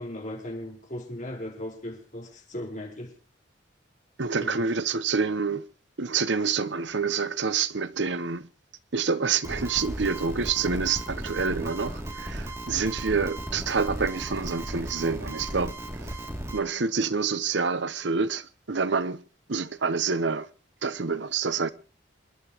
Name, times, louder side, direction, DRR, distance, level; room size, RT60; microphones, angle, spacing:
voice 1, 0.0-3.1 4.4-4.7, left 1 dB, 40° left, 4.8 m, -37 dB
voice 2, 4.2-5.6 6.0-8.5 8.9-16.1 16.5-19.2 19.5-20.5 20.8-21.7, right 5 dB, 70° right, 0.9 m, -27 dB
sound 1, 9.4-16.6, right 1 dB, 15° right, 2.9 m, -36 dB
28.5 x 11.0 x 3.1 m
head